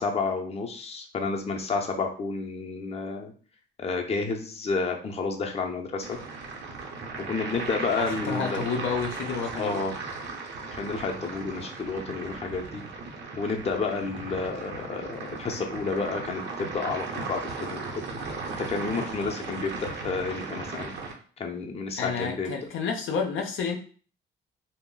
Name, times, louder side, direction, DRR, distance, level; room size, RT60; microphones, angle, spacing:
voice 1, 0.0-3.3 3.8-6.2 7.2-8.6 9.6-9.9 10.8-12.8 13.4-17.8 18.6-20.9 21.4-22.5, left 4 dB, 30° left, 2 dB, 0.6 m, -30 dB
sound 1, 6.0-21.1, right 4 dB, 65° right, 0.8 m, -37 dB
voice 2, 8.0-9.9 22.0-23.8, left 5 dB, 75° left, 3 dB, 0.5 m, -30 dB
2.2 x 2.0 x 3.7 m, 0.42 s
cardioid pair, 90°, 20 cm